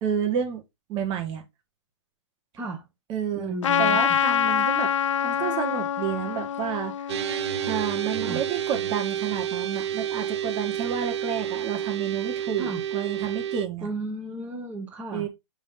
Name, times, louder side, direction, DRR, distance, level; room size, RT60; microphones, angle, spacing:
voice 1, 0.0-0.6 0.9-1.4 3.1-3.5 3.8-4.9 5.2-7.1 7.7-13.9 15.1-15.3, right 8 dB, 30° right, 1.8 m, -30 dB
voice 2, 3.4-4.0 8.2-8.4 12.6-12.8 13.8-15.3, right 2 dB, 10° right, 1.2 m, -33 dB
Trumpet, 3.6-8.3, left 9 dB, 85° left, 0.4 m, -26 dB
sound 1, 7.1-13.7, right 10 dB, 65° right, 0.7 m, -30 dB
5.9 x 4.0 x 4.3 m
hypercardioid pair, 140°, 16 cm